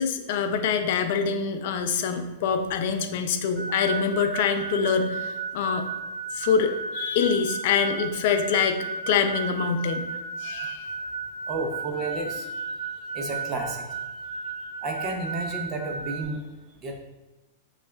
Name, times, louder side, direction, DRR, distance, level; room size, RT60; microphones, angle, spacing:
voice 1, 0.0-5.9 6.3-10.0 10.4-10.8, left 6 dB, 60° left, 7 dB, 0.4 m, -25 dB
sound 1, 3.6-16.2, right 4 dB, 10° left, 0.8 m, -34 dB
voice 2, 11.5-12.7 13.1-13.8 14.8-16.4 16.8-17.0, right 3 dB, 30° right, 2 dB, 0.6 m, -31 dB
6.0 x 2.3 x 2.2 m, 1.1 s
hypercardioid pair, 130°, 0 cm